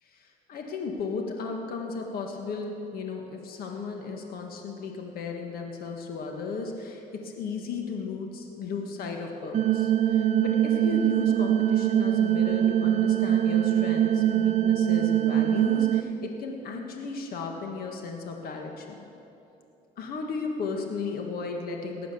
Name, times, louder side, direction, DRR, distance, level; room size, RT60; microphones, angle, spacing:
voice 1, 0.0-19.0 20.0-22.1, left 4 dB, 65° left, 2 dB, 1.6 m, -35 dB
sound 1, 9.5-16.0, right 11 dB, 40° right, 0.5 m, -23 dB
18.5 x 7.8 x 6.9 m, 2.8 s
cardioid pair, 110°, 17 cm